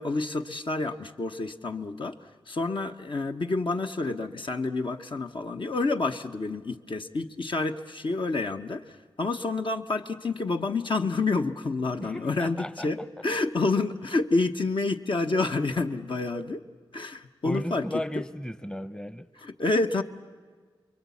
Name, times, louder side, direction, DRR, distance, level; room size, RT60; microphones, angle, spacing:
voice 1, 0.0-2.2 2.5-8.8 9.2-16.6 16.9-17.8 19.4-20.0, left 3 dB, 65° left, 1.0 m, -28 dB
voice 2, 12.0-13.1 17.4-19.3, left 1 dB, 10° left, 0.8 m, -35 dB
29.0 x 22.5 x 8.4 m
wide cardioid pair, 70°, 9 cm